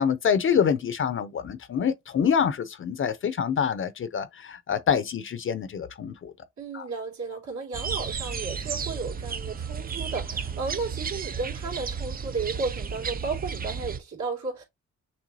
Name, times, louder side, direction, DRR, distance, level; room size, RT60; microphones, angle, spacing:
voice 1, 0.0-6.3 6.7-6.9, left 7 dB, 45° left, 0.6 m, -26 dB
voice 2, 6.6-14.6, right 4 dB, 65° right, 2.5 m, -33 dB
sound 1, 7.7-14.0, right 6 dB, 30° right, 0.5 m, -33 dB
6.1 x 3.1 x 2.7 m
cardioid pair, 90°, 30 cm